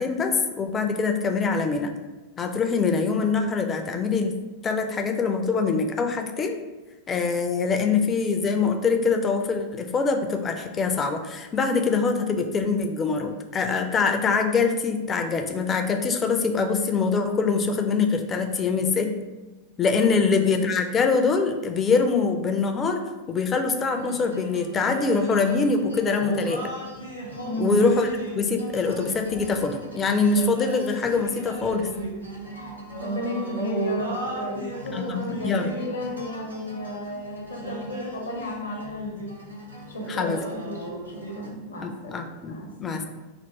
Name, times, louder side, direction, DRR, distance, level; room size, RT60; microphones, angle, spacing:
voice 1, 0.0-1.9 2.4-4.3 4.6-6.6 7.1-19.1 19.8-26.7 27.6-28.1 28.4-31.9 34.9-35.7 40.1-40.4 41.8-43.1, left 4 dB, 20° left, 5 dB, 0.4 m, -24 dB
sound 1, 23.9-41.5, right 2 dB, 90° right, 0.7 m, -36 dB
voice 2, 27.4-27.8 33.0-39.3 39.9-42.7, equal, 75° left, 0 dB, 0.8 m, -33 dB
3.4 x 2.4 x 4.0 m, 1.2 s
figure-of-eight pair, 90°, 0 cm